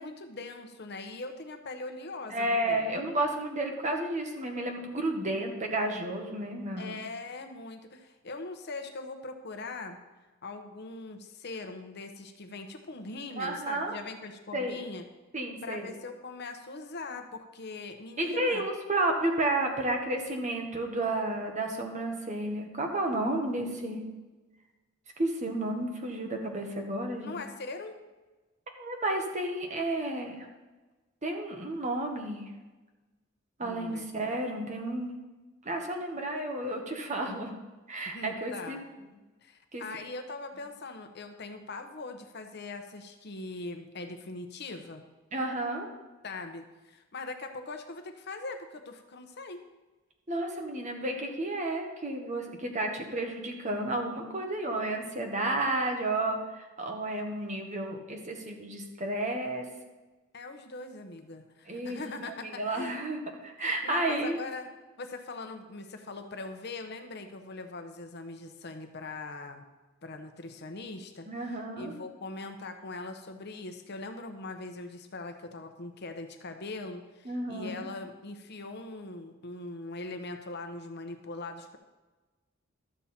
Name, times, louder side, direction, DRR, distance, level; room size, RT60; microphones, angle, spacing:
voice 1, 0.0-2.9 6.8-10.0 10.4-15.0 15.6-18.6 27.2-28.0 33.6-34.1 38.1-38.8 39.4-45.0 46.2-49.6 60.3-63.0 63.6-64.7 65.0-69.7 70.0-81.8, left 3 dB, 55° left, 6 dB, 0.9 m, -41 dB
voice 2, 2.3-6.9 13.4-13.9 14.5-14.8 15.3-15.9 18.2-24.0 25.2-27.4 28.8-30.5 31.2-32.5 33.6-35.1 35.6-37.5 37.9-38.8 39.7-39.8 45.3-45.9 50.3-59.6 61.7-62.0 62.5-64.4 71.3-71.9 77.2-77.9, right 1 dB, 35° right, 3 dB, 1.4 m, -32 dB
12.5 x 7.3 x 4.3 m, 1.2 s
head